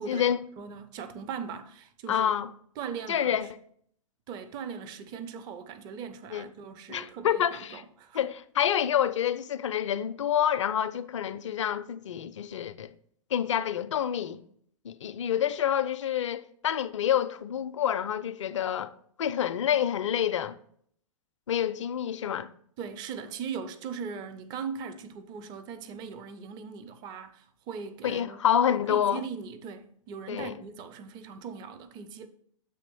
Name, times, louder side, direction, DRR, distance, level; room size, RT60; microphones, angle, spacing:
voice 1, 0.1-0.4 2.1-2.5 3.1-3.5 6.3-6.5 6.9-7.8 8.1-12.9 13.3-14.4 14.8-18.9 19.2-20.6 21.5-22.5 28.0-29.2 30.3-30.5, left 9 dB, 60° left, 0.4 m, -28 dB
voice 2, 0.6-2.3 2.8-3.4 4.3-8.3 22.8-32.3, right 6 dB, 25° right, 0.5 m, -39 dB
7.6 x 2.9 x 5.9 m
figure-of-eight pair, 105°, 17 cm